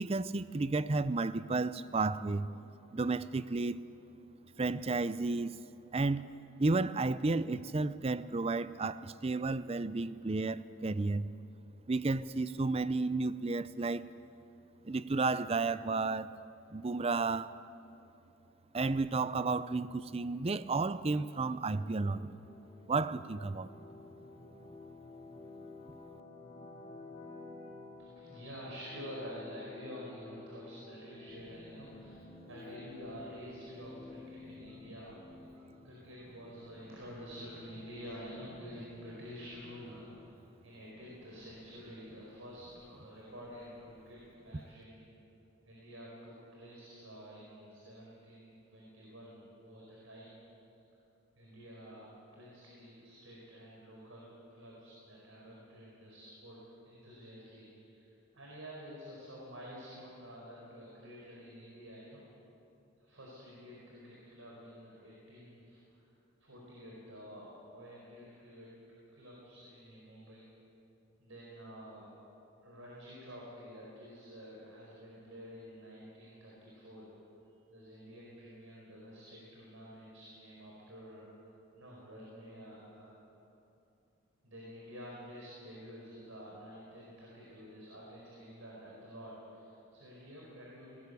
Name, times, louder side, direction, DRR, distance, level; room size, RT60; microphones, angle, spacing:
voice 1, 0.0-2.5 2.9-3.8 4.6-5.6 5.9-6.3 6.6-11.3 11.9-14.1 14.8-16.4 16.7-17.6 18.7-22.4 22.9-23.7, right 3 dB, 30° right, 15 dB, 0.5 m, -32 dB
sound 1, 21.5-40.3, left 3 dB, 30° left, 2.5 m, -52 dB
voice 2, 28.0-40.3 40.6-45.1 45.6-50.4 51.3-56.6 56.8-58.0 58.3-62.2 63.0-66.0 66.4-68.7 69.1-70.5 71.2-72.1 72.6-77.1 77.7-81.3 81.7-83.1 84.4-91.1, equal, 80° right, -4 dB, 4.9 m, -49 dB
20.0 x 18.0 x 8.2 m, 2.8 s
head